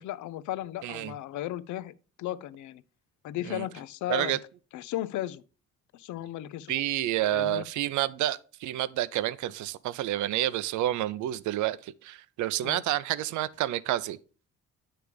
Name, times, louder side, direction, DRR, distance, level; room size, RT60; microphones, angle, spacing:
voice 1, 0.0-2.8 3.2-4.4 4.7-5.4 5.9-6.8 7.3-7.6 12.6-12.8, left 13 dB, 75° left, 0.5 m, -35 dB
voice 2, 0.8-1.1 3.5-3.7 4.1-4.4 6.7-14.2, right 14 dB, 75° right, 0.5 m, -29 dB
9.6 x 3.3 x 5.0 m
cardioid pair, 90°, 30 cm